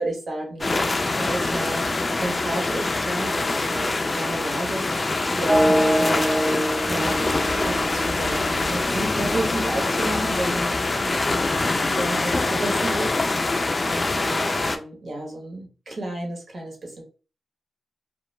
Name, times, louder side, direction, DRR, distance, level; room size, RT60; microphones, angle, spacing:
voice 1, 0.0-6.3 6.9-7.3 7.6-13.5 13.8-17.0, right 1 dB, 60° right, 0 dB, 0.9 m, -32 dB
sound 1, 0.6-14.8, left 2 dB, 40° left, 0.3 m, -24 dB
sound 2, 5.5-9.4, equal, 15° right, 0.5 m, -24 dB
2.2 x 2.1 x 3.1 m, 0.36 s
cardioid pair, 55°, 0 cm